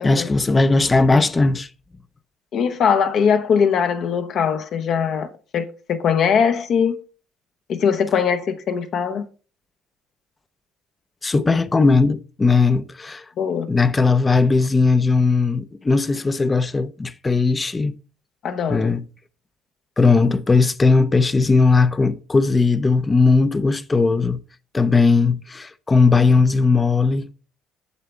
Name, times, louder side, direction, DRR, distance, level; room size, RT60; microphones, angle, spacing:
voice 1, 0.0-1.7 11.2-13.2 13.7-17.9 18.7-19.0 20.0-24.4 24.7-27.3, left 4 dB, 25° left, 0.6 m, -18 dB
voice 2, 2.5-7.0 7.7-9.2 13.4-13.7 18.4-18.9, left 7 dB, 60° left, 0.8 m, -21 dB
8.3 x 6.7 x 3.3 m
supercardioid pair, 85°, 0 cm